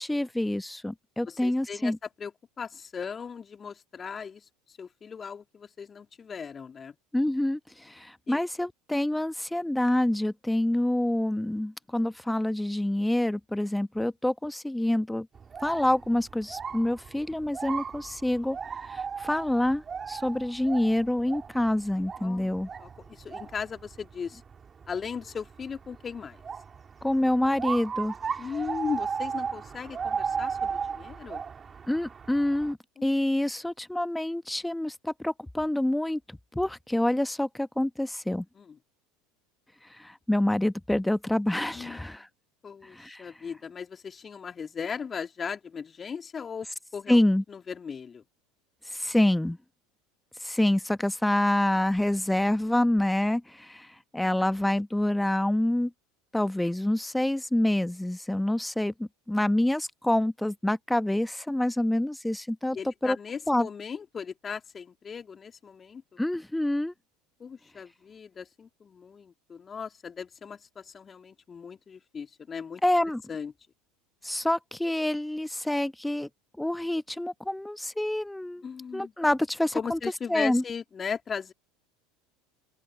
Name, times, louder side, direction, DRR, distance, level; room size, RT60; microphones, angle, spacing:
voice 1, 0.0-2.0 7.1-15.3 15.6-18.6 18.9-22.7 27.0-28.1 31.9-38.4 40.0-42.3 42.9-43.2 47.1-47.4 48.9-49.6 50.4-53.9 54.1-55.9 56.3-62.8 63.0-63.2 63.5-63.7 66.2-66.9 72.8-73.2 74.2-76.3 76.6-78.6 78.9-80.0 80.3-80.6, left 1 dB, 5° left, 1.2 m, -27 dB
voice 2, 1.2-1.9 2.2-2.3 2.6-7.0 8.3-8.4 22.2-22.5 22.8-24.4 24.9-26.4 28.4-31.4 33.0-33.1 38.5-38.8 41.7-42.2 42.6-46.7 46.9-47.2 47.5-48.2 62.7-66.0 67.4-72.8 73.3-73.5 78.6-79.1 79.7-81.5, left 6 dB, 30° left, 3.3 m, -37 dB
sound 1, 15.4-32.7, right 6 dB, 30° right, 3.7 m, -36 dB
open air
hypercardioid pair, 75°, 0 cm